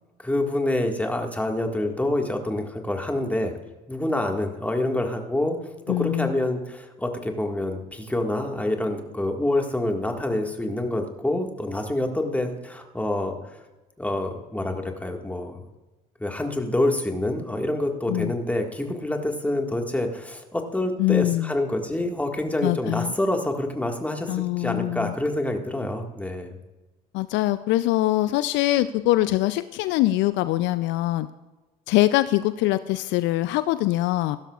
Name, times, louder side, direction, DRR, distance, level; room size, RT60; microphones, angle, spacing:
voice 1, 0.2-3.5 3.9-5.6 5.9-13.6 14.0-15.7 16.2-26.6, left 1 dB, 5° left, 3 dB, 1.8 m, -27 dB
voice 2, 5.9-6.3 18.1-18.3 21.0-21.5 22.6-23.1 24.3-25.1 27.1-31.3 31.9-34.4, left 16 dB, 60° left, 14 dB, 0.4 m, -23 dB
16.0 x 12.0 x 2.4 m, 1.1 s
hypercardioid pair, 60°, 21 cm